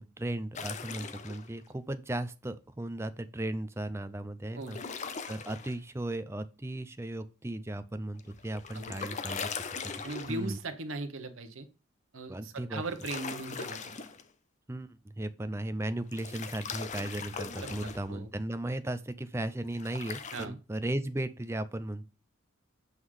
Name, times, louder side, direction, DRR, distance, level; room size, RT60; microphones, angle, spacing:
voice 1, 0.0-9.5 10.3-10.6 12.3-12.8 14.7-22.0, right 1 dB, 10° right, 11 dB, 0.4 m, -36 dB
sound 1, 0.5-1.5 4.6-5.8 8.2-10.6 12.8-14.2 16.1-18.1 19.7-20.5, left 5 dB, 35° left, 0.6 m, -40 dB
voice 2, 8.7-9.1 10.0-11.7 12.1-14.0 17.6-17.7 18.1-18.3 20.3-20.5, right 2 dB, 75° right, 8 dB, 1.0 m, -38 dB
8.0 x 3.7 x 4.8 m, 0.33 s
head